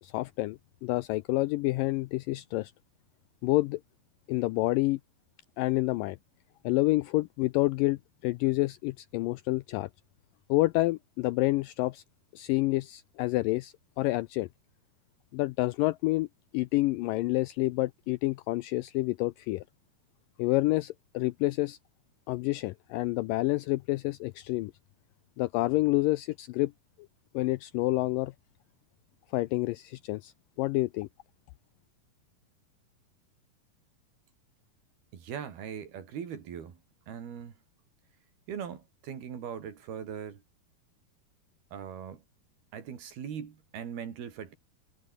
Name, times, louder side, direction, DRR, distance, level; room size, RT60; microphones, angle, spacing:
voice 1, 0.0-2.7 3.4-3.8 4.3-5.0 5.6-6.2 6.6-9.9 10.5-12.0 12.3-14.5 15.3-16.3 16.5-19.6 20.4-21.8 22.3-24.7 25.4-26.7 27.3-28.3 29.3-30.3 30.6-31.1, left 19 dB, 85° left, 1.9 m, -28 dB
voice 2, 35.1-36.8 37.1-37.5 38.5-40.4 41.7-42.2 42.7-44.6, right 8 dB, 75° right, 5.1 m, -40 dB
omnidirectional pair, 4.5 m